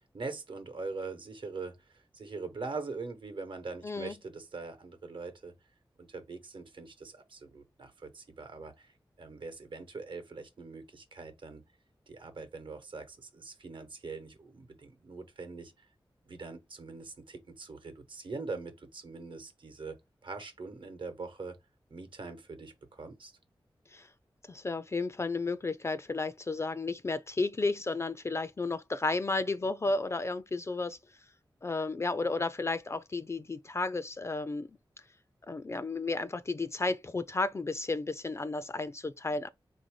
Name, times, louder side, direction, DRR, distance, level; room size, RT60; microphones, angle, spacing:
voice 1, 0.1-5.5 6.0-8.9 9.2-11.6 12.1-15.7 16.3-20.0 20.2-21.6 21.9-23.3, right 4 dB, 75° right, 1.0 m, -42 dB
voice 2, 3.8-4.1 23.9-24.1 24.5-31.0 31.6-34.7 35.5-39.5, left 3 dB, 30° left, 0.3 m, -33 dB
3.6 x 2.6 x 4.6 m
wide cardioid pair, 100°, 9 cm